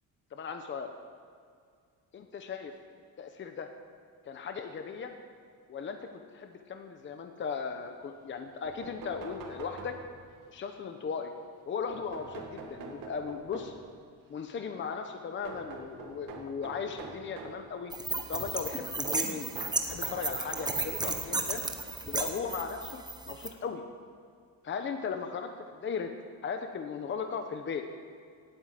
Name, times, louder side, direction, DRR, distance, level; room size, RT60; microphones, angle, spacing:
voice 1, 0.3-0.9 2.3-2.7 3.2-3.7 4.3-5.1 5.7-6.0 6.3-9.9 10.5-11.3 11.7-13.7 14.3-17.9 18.3-19.5 19.9-21.6 22.1-23.8 24.6-25.5 25.8-26.1 26.4-27.8, left 6 dB, 35° left, 6 dB, 0.9 m, -37 dB
sound 1, 8.3-8.4 8.6-10.4 11.9-14.0 15.4-17.7 19.0-20.9 21.8-21.9 23.2-23.3 23.6-23.7, right 4 dB, 85° right, 2.4 m, -45 dB
sound 2, 17.9-23.5, right 3 dB, 10° right, 0.9 m, -34 dB
17.5 x 9.3 x 7.6 m, 2.1 s
cardioid pair, 180°, 34 cm